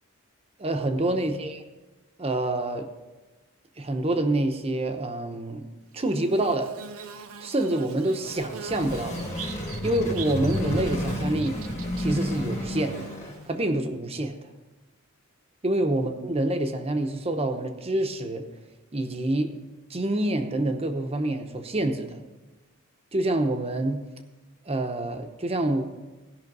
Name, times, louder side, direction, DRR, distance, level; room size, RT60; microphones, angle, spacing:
voice 1, 0.6-1.6 2.2-2.9 3.8-5.6 5.9-6.7 7.4-9.3 9.8-11.6 12.0-13.1 13.5-14.4 15.6-18.5 18.9-19.5 19.9-22.2 23.1-24.0 24.7-25.8, right 1 dB, 30° right, 6 dB, 0.8 m, -27 dB
Bird / Buzz, 6.0-13.7, right 6 dB, 70° right, 0.7 m, -42 dB
sound 1, 8.2-13.5, left 1 dB, 30° left, 1.7 m, -31 dB
16.0 x 5.7 x 5.4 m, 1.2 s
head